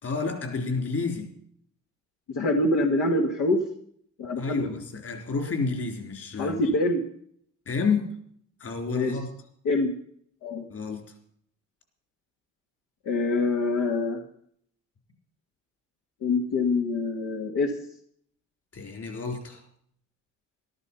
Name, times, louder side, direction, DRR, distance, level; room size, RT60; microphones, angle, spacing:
voice 1, 0.0-1.3 4.4-6.6 7.7-8.1 8.6-9.3 10.7-11.1 18.7-19.6, left 4 dB, 50° left, 5 dB, 4.1 m, -30 dB
voice 2, 2.3-3.6 4.2-4.7 6.4-7.0 8.9-9.1 9.7-9.9 10.4-10.6 13.1-14.2 16.2-17.7, left 2 dB, 85° left, 2 dB, 1.7 m, -25 dB
13.5 x 12.5 x 5.6 m, 0.63 s
cardioid pair, 90°, 30 cm